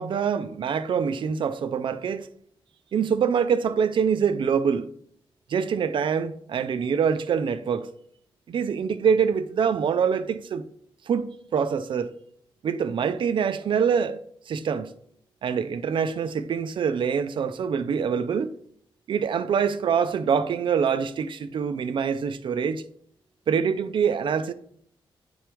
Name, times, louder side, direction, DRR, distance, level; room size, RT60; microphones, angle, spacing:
voice 1, 0.0-2.3 2.9-4.9 5.5-7.9 8.5-10.7 11.1-12.1 12.6-14.2 14.5-14.9 15.4-18.5 19.1-22.8 23.5-24.5, right 7 dB, 65° right, 0.4 m, -25 dB
9.7 x 3.4 x 3.0 m
cardioid pair, 95°, 9 cm